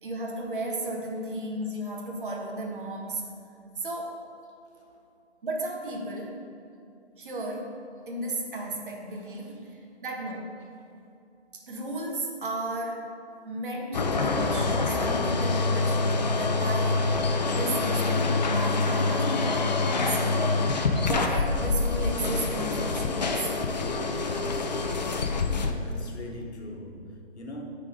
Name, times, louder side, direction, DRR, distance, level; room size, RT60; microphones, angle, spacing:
voice 1, 0.0-3.2 3.8-4.2 5.4-6.4 7.1-7.8 8.1-9.7 10.0-10.5 11.7-13.1 13.4-20.7 21.0-23.5, right 1 dB, 50° right, 0 dB, 1.3 m, -34 dB
sound 1, 13.9-25.7, left 3 dB, 40° left, 0.5 m, -26 dB
voice 2, 25.8-27.6, left 1 dB, 75° left, 1 dB, 1.4 m, -42 dB
9.4 x 3.9 x 4.9 m, 2.5 s
hypercardioid pair, 155°, 33 cm